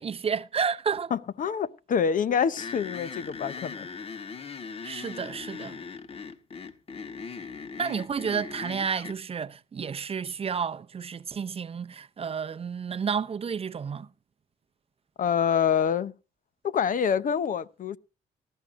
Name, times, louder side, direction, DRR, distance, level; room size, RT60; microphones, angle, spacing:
voice 1, 0.0-1.1 4.8-5.8 7.8-14.1, right 6 dB, 35° right, 0.6 m, -31 dB
voice 2, 1.1-3.9 15.2-16.1 16.6-18.0, left 7 dB, 55° left, 0.8 m, -26 dB
sound 1, 2.6-9.2, left 5 dB, 35° left, 1.4 m, -39 dB
18.5 x 13.5 x 2.6 m
cardioid pair, 85°, 17 cm